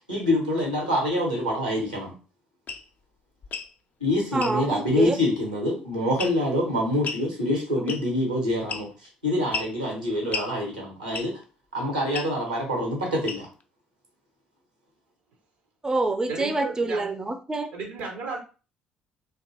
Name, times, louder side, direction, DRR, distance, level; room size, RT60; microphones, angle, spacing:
voice 1, 0.1-2.1 4.0-8.9 9.2-11.4 11.7-13.5, left 1 dB, 90° right, 0 dB, 0.9 m, -26 dB
sound 1, 2.7-2.8 3.4-3.7 4.4-4.6 6.2-6.5 7.0-7.3 7.9-8.2 8.7-9.1 9.5-9.7 10.3-10.5 11.1-11.4 12.1-12.3 13.2-13.6, left 4 dB, 40° left, 0.4 m, -33 dB
voice 2, 4.3-5.2 7.8-7.9 15.8-17.7, right 2 dB, 15° right, 7 dB, 0.4 m, -26 dB
voice 3, 16.3-17.1 17.7-18.4, right 4 dB, 70° right, 2 dB, 0.5 m, -34 dB
2.7 x 2.2 x 2.7 m, 0.35 s
figure-of-eight pair, 50°, 4 cm